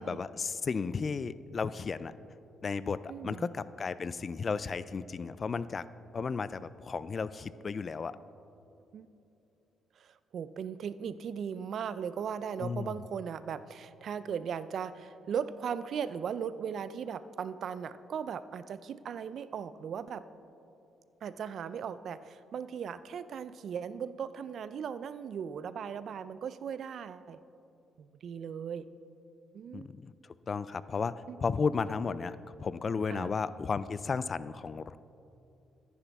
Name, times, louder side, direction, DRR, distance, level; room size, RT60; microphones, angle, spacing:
voice 1, 0.0-2.1 2.6-5.8 6.1-8.2 12.6-12.9 29.7-30.1 30.5-31.1 31.4-35.0, left 5 dB, 40° left, 16 dB, 0.3 m, -34 dB
voice 2, 3.1-3.5 8.9-9.1 10.0-20.2 21.2-27.4 28.0-28.9 29.5-29.9 31.3-31.4 33.1-33.3, right 7 dB, 60° right, 15 dB, 0.4 m, -38 dB
14.0 x 10.0 x 3.5 m, 2.8 s
cardioid pair, 90°, 0 cm